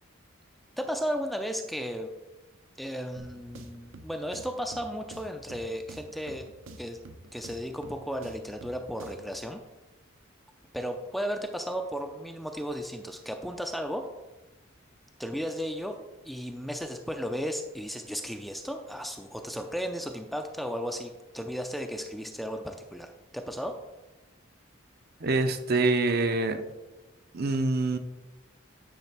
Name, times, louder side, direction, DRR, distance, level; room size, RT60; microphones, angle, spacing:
voice 1, 0.8-2.1 2.8-6.5 6.8-7.0 7.3-9.6 10.7-14.0 15.2-16.0 16.2-23.8, equal, ahead, 4 dB, 0.4 m, -34 dB
sound 1, 3.2-9.4, right 2 dB, 75° right, 0.9 m, -49 dB
voice 2, 25.2-26.6 27.3-28.0, right 3 dB, 50° right, 8 dB, 0.7 m, -25 dB
10.0 x 3.5 x 5.8 m, 1.1 s
head